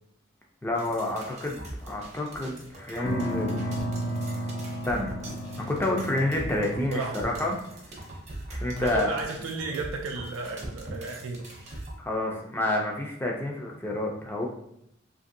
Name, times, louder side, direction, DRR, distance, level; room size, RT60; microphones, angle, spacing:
voice 1, 0.6-3.7 4.8-5.2 5.6-7.6 8.5-9.1 12.0-14.5, left 1 dB, 10° left, -1 dB, 0.4 m, -29 dB
sound 1, 0.7-11.9, right 1 dB, 35° right, 0.6 m, -42 dB
sound 2, 3.0-6.8, equal, 65° left, 0.5 m, -32 dB
voice 2, 6.8-7.5 8.8-11.5, right 3 dB, 85° right, 2 dB, 0.3 m, -34 dB
2.8 x 2.5 x 2.6 m, 0.75 s
head